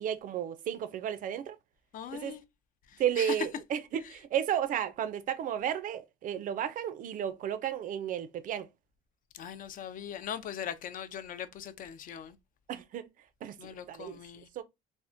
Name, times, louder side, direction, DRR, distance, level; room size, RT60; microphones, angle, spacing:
voice 1, 0.0-1.6 2.1-2.4 3.0-8.7 12.7-13.1 13.4-14.2 14.6-14.7, right 9 dB, 55° right, 0.4 m, -33 dB
voice 2, 1.9-2.4 2.9-3.4 9.3-12.4 13.6-14.5, left 8 dB, 55° left, 0.4 m, -40 dB
3.4 x 2.1 x 2.5 m
cardioid pair, 110°, 17 cm